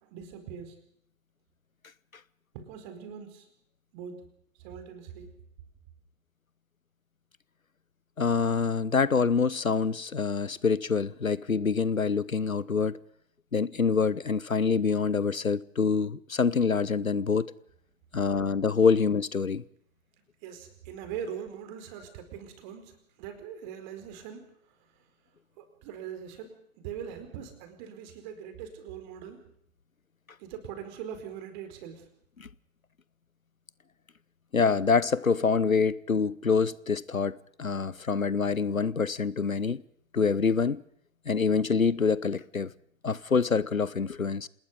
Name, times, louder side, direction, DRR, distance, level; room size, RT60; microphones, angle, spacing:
voice 1, 0.0-0.8 2.5-3.5 3.9-5.3 20.4-25.1 25.6-29.5 30.4-32.1, right 8 dB, 35° right, 4.5 m, -42 dB
voice 2, 8.2-13.0 13.5-17.5 18.1-19.6 32.4-32.5 34.5-39.8 40.1-40.8 41.3-42.7 43.0-44.5, left 5 dB, 85° left, 0.9 m, -26 dB
28.0 x 20.0 x 5.3 m
figure-of-eight pair, 115°, 40 cm